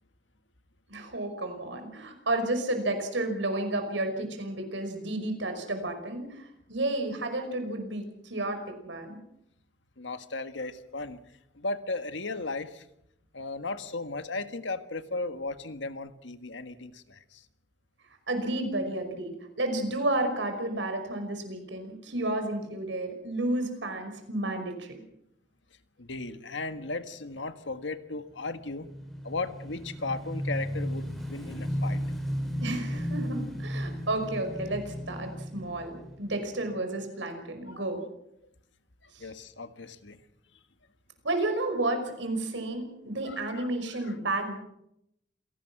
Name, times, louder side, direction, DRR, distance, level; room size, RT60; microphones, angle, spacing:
voice 1, 0.9-9.2 18.3-24.9 32.6-38.0 39.1-39.3 41.2-44.6, right 2 dB, 85° right, 6 dB, 5.6 m, -31 dB
voice 2, 10.0-11.2 11.5-12.8 13.3-17.4 26.0-28.9 29.2-32.0 37.7-37.8 39.0-40.2 43.4-43.7 44.1-44.2, left 3 dB, 90° left, 9 dB, 1.7 m, -36 dB
Motorcycle / Engine, 28.4-36.9, equal, ahead, 5.3 m, -34 dB
27.5 x 18.0 x 6.1 m, 0.79 s
head